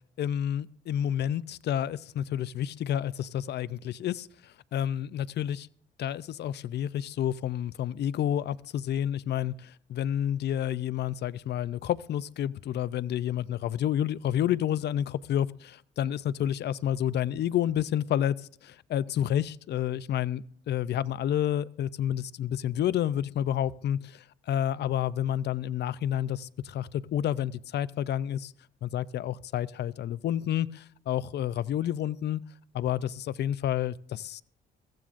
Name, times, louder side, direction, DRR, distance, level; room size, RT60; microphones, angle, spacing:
voice 1, 0.2-5.7 6.0-28.5 28.8-32.4 32.7-34.4, left 10 dB, 60° left, 0.5 m, -30 dB
22.0 x 15.0 x 2.5 m
cardioid pair, 90°, 20 cm